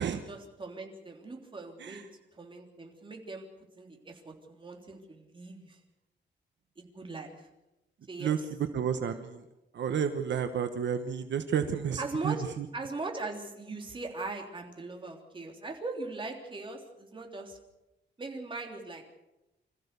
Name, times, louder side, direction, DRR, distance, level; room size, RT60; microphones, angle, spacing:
voice 1, 0.0-2.1 2.3-3.5 3.8-5.8 6.8-7.5 8.1-8.4 12.0-12.4 12.7-17.6 18.2-19.0, right 3 dB, 25° right, 2 dB, 3.4 m, -40 dB
voice 2, 8.7-9.4 9.7-12.7, right 8 dB, 70° right, 7 dB, 1.2 m, -31 dB
26.0 x 15.0 x 6.8 m, 0.96 s
wide cardioid pair, 130°, 19 cm